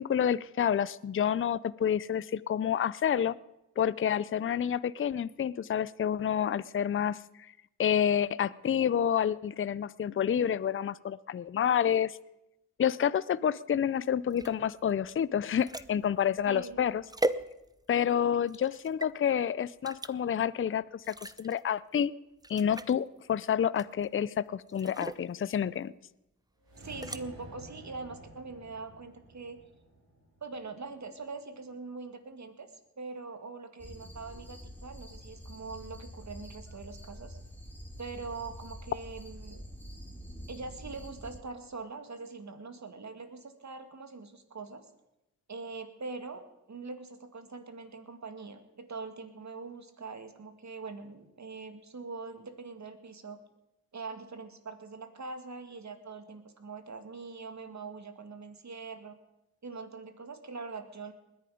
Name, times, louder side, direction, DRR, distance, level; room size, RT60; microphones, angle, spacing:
voice 1, 0.0-3.3 3.8-7.2 7.8-12.2 12.8-17.0 17.9-22.1 22.5-25.9, left 9 dB, 35° left, 19 dB, 0.5 m, -29 dB
sound 1, 14.3-18.0 18.5-19.1 19.8-20.1 21.0-21.6 22.0-22.1 22.4-23.0 23.8-24.2 24.7-25.3 26.8-27.2, right 1 dB, 10° right, 0.7 m, -38 dB
voice 2, 16.5-16.8 18.2-18.3 26.8-29.6 30.4-32.7 33.0-37.4 38.0-39.6 40.5-44.9 45.5-53.4 53.9-59.2 59.6-61.1, right 4 dB, 50° right, 7 dB, 2.2 m, -43 dB
sound 2, 26.6-31.0, right 1 dB, 80° right, 4.9 m, -51 dB
sound 3, 33.8-41.4, equal, 5° left, 2.8 m, -46 dB
20.0 x 10.5 x 5.1 m, 0.92 s
cardioid pair, 50°, 36 cm